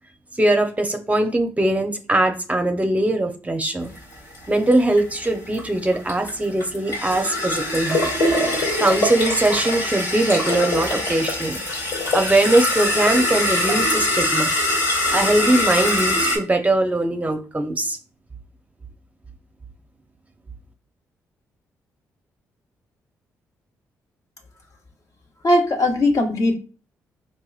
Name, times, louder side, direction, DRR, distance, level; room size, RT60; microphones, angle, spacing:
voice 1, 0.4-3.9 4.5-8.1 8.8-11.6 12.1-14.6 15.1-18.0, right 1 dB, 20° right, 5 dB, 0.6 m, -21 dB
sound 1, 4.0-16.4, left 1 dB, 85° left, 1.9 m, -23 dB
voice 2, 25.4-26.5, left 1 dB, 50° left, 2 dB, 1.1 m, -18 dB
4.5 x 2.9 x 2.3 m, 0.36 s
supercardioid pair, 50°, 7 cm